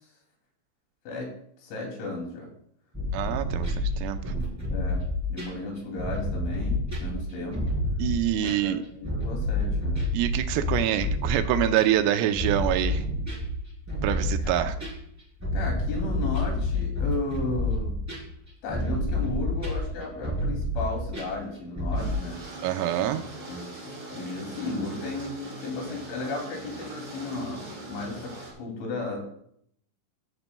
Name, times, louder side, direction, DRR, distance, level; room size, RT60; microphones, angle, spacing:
voice 1, 1.6-2.5 4.2-5.0 5.3-7.6 8.4-10.0 14.4-14.7 15.5-17.9 18.6-22.4 23.0-23.1 23.5-29.2, left 3 dB, 70° left, 0 dB, 5.0 m, -34 dB
sound 1, 2.9-22.1, left 1 dB, 5° right, 3.1 m, -29 dB
voice 2, 3.1-4.2 8.0-8.8 10.1-13.0 14.0-14.7 22.6-23.2, right 11 dB, 85° right, 8 dB, 3.4 m, -25 dB
sound 2, 22.0-28.5, right 2 dB, 45° right, 6.0 m, -41 dB
15.0 x 11.0 x 2.3 m, 0.68 s
omnidirectional pair, 5.8 m